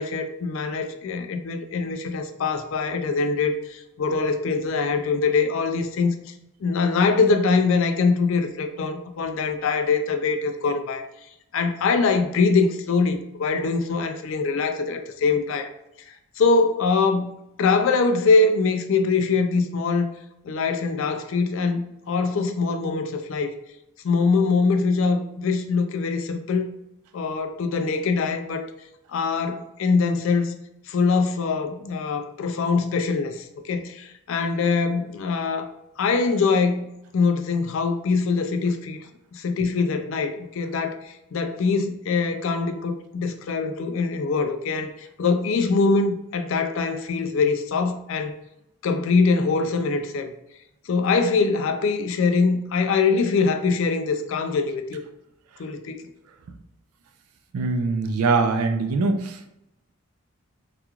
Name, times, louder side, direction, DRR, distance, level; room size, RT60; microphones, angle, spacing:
voice 1, 0.0-6.3 6.6-11.1 11.5-15.7 16.1-17.3 17.6-20.1 20.4-23.5 24.0-26.7 27.1-28.7 29.1-30.6 30.9-35.7 36.0-36.9 37.1-39.0 39.3-48.3 48.8-50.3 50.9-55.0 55.6-56.0, left 4 dB, 60° left, 6 dB, 0.3 m, -23 dB
voice 2, 57.5-59.4, right 3 dB, 85° right, 7 dB, 0.4 m, -22 dB
2.9 x 2.3 x 2.3 m, 0.86 s
head